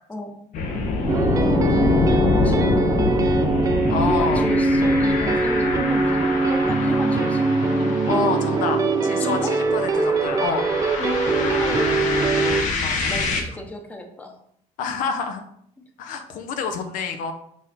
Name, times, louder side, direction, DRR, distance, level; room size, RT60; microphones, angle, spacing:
sound 1, 0.5-13.4, left 3 dB, 70° left, 1.1 m, -25 dB
voice 1, 1.1-3.5 4.0-7.5 9.2-9.5 11.0-12.0 13.1-14.4, left 1 dB, 10° left, 3 dB, 0.8 m, -33 dB
sound 2, 1.1-12.6, right 3 dB, 25° right, 0.5 m, -22 dB
voice 2, 3.9-4.5 8.1-10.7 12.8-13.1 14.8-15.4 16.0-17.3, left 5 dB, 90° left, 7 dB, 0.9 m, -27 dB
6.3 x 3.8 x 4.2 m, 0.69 s
cardioid pair, 150°, 13 cm